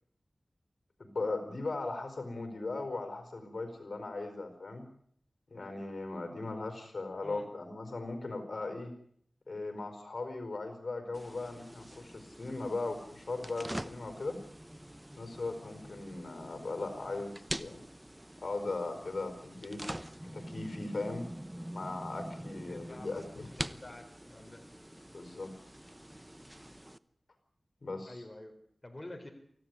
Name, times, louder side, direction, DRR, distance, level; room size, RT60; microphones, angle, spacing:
voice 1, 1.0-4.8 5.5-8.9 9.5-14.4 15.2-17.8 18.4-19.8 20.3-21.3 21.7-23.5 25.1-25.5 27.8-28.2, left 3 dB, 60° left, 8 dB, 4.7 m, -38 dB
sound 1, 11.1-27.0, right 1 dB, 10° right, 0.9 m, -45 dB
voice 2, 22.5-24.7 28.1-28.6 28.8-29.3, left 1 dB, 25° left, 4 dB, 4.0 m, -49 dB
24.5 x 15.5 x 9.7 m, 0.67 s
wide cardioid pair, 85°, 0 cm